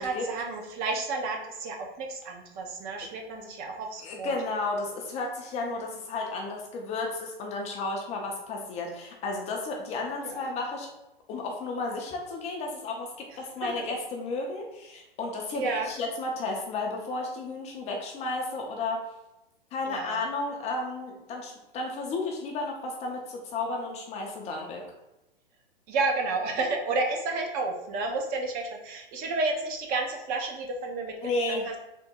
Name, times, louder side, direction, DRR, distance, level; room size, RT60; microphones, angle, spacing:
voice 1, 0.0-4.3 10.2-10.5 13.6-13.7 15.5-15.9 19.9-20.2 25.9-31.1 31.5-31.6, right 3 dB, 30° right, 2 dB, 0.7 m, -31 dB
voice 2, 4.0-10.9 11.3-13.1 13.4-19.0 19.7-24.8 31.2-31.7, left 3 dB, 20° left, 0 dB, 0.5 m, -33 dB
3.5 x 2.1 x 4.2 m, 0.93 s
hypercardioid pair, 130°, 30 cm